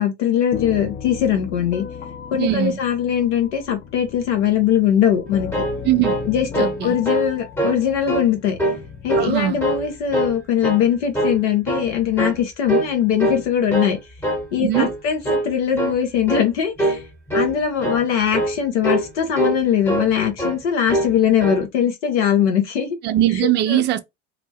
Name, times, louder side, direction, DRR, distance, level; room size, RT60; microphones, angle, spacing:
voice 1, 0.0-1.9 2.3-5.5 6.3-8.6 9.0-14.0 14.5-17.0 17.3-23.0 23.7-23.8, left 9 dB, 70° left, 1.0 m, -21 dB
sound 1, 0.5-10.1, left 8 dB, 30° left, 0.5 m, -36 dB
voice 2, 2.4-2.8 5.8-6.1 6.6-7.0 9.2-9.6 14.6-14.9 23.0-24.0, right 13 dB, 30° right, 0.4 m, -20 dB
sound 2, 5.3-6.8 7.1-7.3 7.6-8.3 8.6-9.3 9.6-10.4 10.6-10.9 11.1-11.9 12.2-12.4 12.7-12.9 13.2-13.9 14.2-14.5 14.7-15.0 15.2-15.5 15.8-16.0 16.3-16.5 16.8-17.0 17.3-17.5 17.8-18.0 18.3-18.6 18.8-19.1 19.4-20.1 20.4-20.6 20.9-21.1 21.4-21.7, right 1 dB, 5° left, 1.0 m, -23 dB
2.8 x 2.1 x 2.8 m
figure-of-eight pair, 70°, 36 cm